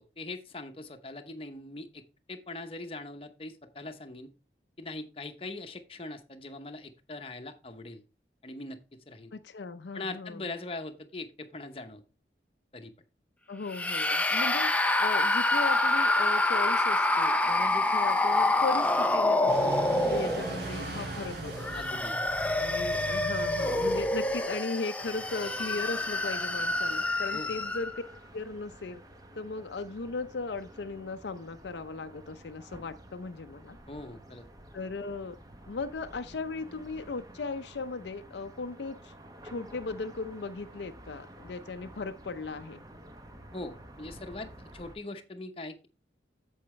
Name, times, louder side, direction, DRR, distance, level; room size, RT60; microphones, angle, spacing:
voice 1, 0.0-2.0 2.3-4.3 4.8-8.0 8.4-9.3 9.9-12.0 12.7-12.9 21.7-22.3 27.3-27.5 33.9-34.5 43.5-45.9, left 2 dB, 30° left, 0.9 m, -41 dB
voice 2, 9.3-10.5 13.5-21.8 22.6-28.0 28.3-29.0 29.3-33.8 34.7-35.4 35.7-39.1 39.4-42.8, left 3 dB, 75° left, 0.5 m, -37 dB
sound 1, 13.7-20.8 21.5-28.0, left 2 dB, 10° left, 0.4 m, -27 dB
sound 2, 19.5-24.6, right 2 dB, 70° right, 4.0 m, -39 dB
sound 3, 25.0-45.0, right 1 dB, 20° right, 0.9 m, -51 dB
8.5 x 7.1 x 3.2 m
head